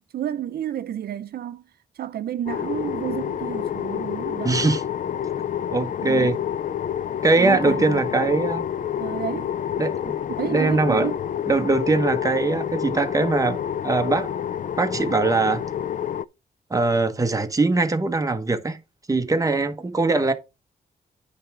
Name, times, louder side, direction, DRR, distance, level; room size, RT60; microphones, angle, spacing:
voice 1, 0.0-1.6 2.0-4.6 6.0-6.3 7.4-8.0 9.0-9.5 10.3-11.1, right 10 dB, 85° right, 0.5 m, -30 dB
sound 1, 2.5-16.2, left 9 dB, 55° left, 0.4 m, -28 dB
voice 2, 4.4-4.8 5.7-6.4 7.2-8.6 9.8-10.1 10.5-11.1 11.5-13.6 13.8-14.3 14.8-15.6 16.7-18.8 19.1-20.3, right 3 dB, 20° right, 1.2 m, -21 dB
9.5 x 3.5 x 6.0 m
wide cardioid pair, 105°, 16 cm